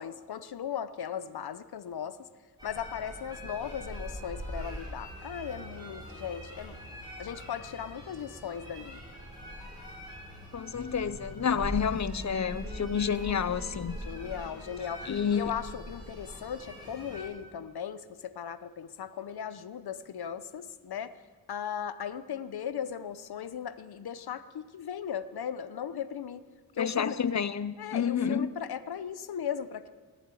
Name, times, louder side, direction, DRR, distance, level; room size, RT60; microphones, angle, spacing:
voice 1, 0.0-2.2 2.6-6.8 7.2-9.0 14.0-21.1 21.5-26.4 26.8-27.2 27.8-29.9, left 8 dB, 90° left, 14 dB, 0.7 m, -37 dB
sound 1, 2.6-17.3, equal, 10° right, 6.4 m, -42 dB
voice 2, 10.5-14.0 15.1-15.6 26.8-28.5, left 7 dB, 50° left, 16 dB, 0.5 m, -29 dB
17.0 x 7.3 x 9.7 m, 1.5 s
wide cardioid pair, 70°, 37 cm